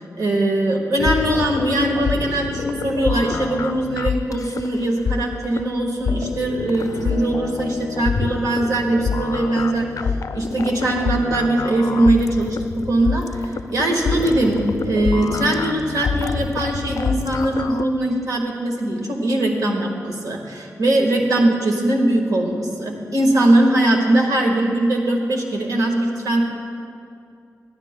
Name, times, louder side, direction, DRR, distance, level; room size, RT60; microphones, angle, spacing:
voice 1, 0.2-9.9 10.3-26.4, right 1 dB, 80° right, 0 dB, 1.5 m, -21 dB
sound 1, 1.0-17.8, left 5 dB, 65° left, 0.4 m, -27 dB
20.5 x 13.0 x 2.2 m, 2.5 s
cardioid pair, 55°, 6 cm